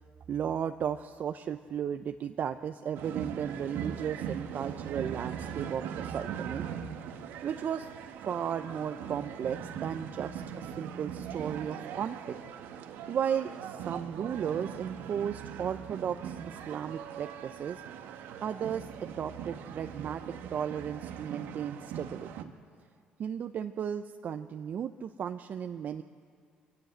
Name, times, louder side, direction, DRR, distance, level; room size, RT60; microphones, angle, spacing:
voice 1, 0.3-6.7 7.4-7.9 8.2-12.4 13.1-17.8 18.4-22.5 23.2-26.0, right 8 dB, 55° right, 8 dB, 0.7 m, -35 dB
sound 1, 2.9-22.4, right 8 dB, 75° right, 1.3 m, -40 dB
24.0 x 15.0 x 7.9 m, 2.2 s
supercardioid pair, 60°, 4 cm